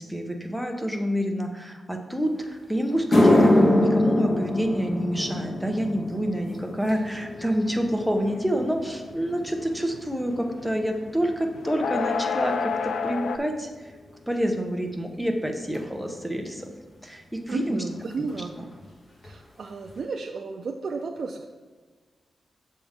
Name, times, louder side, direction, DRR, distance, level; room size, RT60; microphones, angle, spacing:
voice 1, 0.0-13.9 14.3-16.7 17.0-17.8 18.6-18.7, equal, 5° right, 3 dB, 0.8 m, -27 dB
sound 1, 2.4-2.5 2.9-11.4 11.7-12.1 12.9-13.0 15.7-15.8 17.5-17.6 17.8-18.0 18.3-18.8 19.2-19.3 19.9-20.0, left 1 dB, 40° left, 1.5 m, -25 dB
sound 2, 7.6-8.0 8.3-10.7 11.1-13.4, left 6 dB, 85° left, 0.3 m, -29 dB
voice 2, 17.5-18.5 19.2-21.5, right 4 dB, 65° right, 2 dB, 0.4 m, -33 dB
6.8 x 3.7 x 5.6 m, 1.4 s
wide cardioid pair, 95°, 0 cm